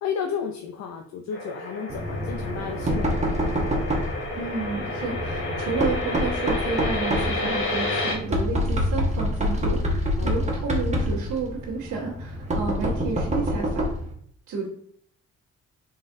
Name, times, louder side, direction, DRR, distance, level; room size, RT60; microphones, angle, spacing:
voice 1, 0.0-3.4 10.2-10.3, left 7 dB, 65° left, 4 dB, 0.5 m, -32 dB
sound 1, 1.3-8.1, left 2 dB, 45° left, 1.1 m, -31 dB
Knock, 1.9-14.1, equal, 25° right, 1.0 m, -27 dB
voice 2, 4.4-13.8 14.5-14.7, right 4 dB, 80° right, -7 dB, 1.2 m, -31 dB
3.9 x 3.8 x 2.6 m, 0.63 s
cardioid pair, 90°, 30 cm